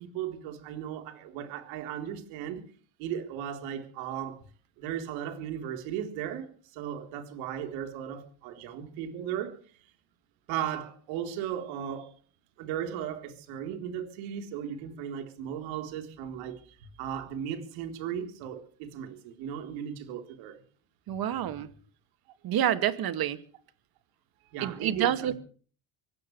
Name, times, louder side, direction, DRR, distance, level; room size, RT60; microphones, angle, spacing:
voice 1, 0.0-2.6 3.0-4.4 4.8-9.6 10.5-12.1 12.6-20.6 24.5-25.3, right 9 dB, 80° right, 4.0 m, -36 dB
voice 2, 21.1-21.7 22.4-23.4 24.6-25.3, right 10 dB, 50° right, 2.3 m, -28 dB
25.5 x 16.0 x 3.3 m
cardioid pair, 120°, 45 cm